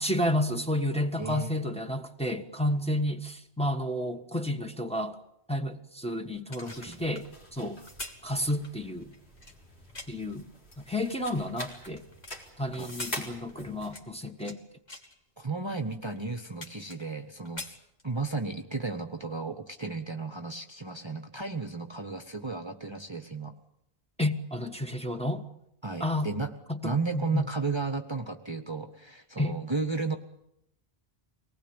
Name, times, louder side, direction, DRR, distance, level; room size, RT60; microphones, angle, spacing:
voice 1, 0.0-5.2 5.5-7.8 8.2-9.1 10.1-10.5 10.8-12.0 12.6-14.6 24.2-25.4 26.0-26.3 26.7-27.4 29.4-29.6, left 1 dB, 5° left, 1.4 m, -31 dB
voice 2, 1.2-1.5 6.6-7.0 12.8-12.9 15.4-17.8 18.0-23.5 25.8-26.5 26.8-30.2, right 4 dB, 25° right, 1.1 m, -34 dB
sound 1, 6.3-10.3 10.9-12.3 12.7-14.6 14.9-15.2 15.8-15.9 16.2-17.2 17.4-18.4 18.8-19.0, left 2 dB, 45° left, 2.4 m, -45 dB
sound 2, 6.6-13.9, left 1 dB, 90° left, 4.4 m, -45 dB
24.5 x 19.5 x 8.8 m
omnidirectional pair, 1.0 m